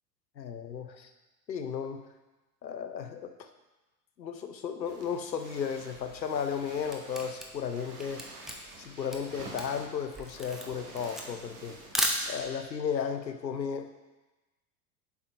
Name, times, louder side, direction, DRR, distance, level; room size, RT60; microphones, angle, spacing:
voice 1, 0.4-1.1 1.5-2.1 2.6-3.3 4.2-8.3 8.8-11.8 12.3-13.9, left 7 dB, 85° left, 8 dB, 0.7 m, -34 dB
sound 1, 4.9-12.7, right 3 dB, 65° right, 1.4 m, -49 dB
Camera, 6.5-12.7, equal, ahead, 0.5 m, -35 dB
7.4 x 4.9 x 4.4 m, 1.1 s
figure-of-eight pair, 85°, 50 cm